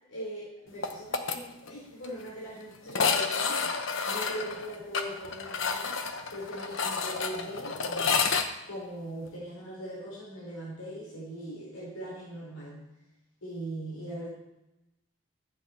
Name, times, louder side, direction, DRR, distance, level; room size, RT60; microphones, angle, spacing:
voice 1, 0.1-6.0 6.3-8.3 8.6-12.9 13.4-14.3, right 1 dB, 80° left, -7 dB, 4.4 m, -40 dB
sound 1, 0.8-1.4 1.7-1.8 2.0-2.1 2.9-8.5, left 5 dB, 60° left, 1.0 m, -30 dB
15.0 x 9.0 x 4.4 m, 0.95 s
head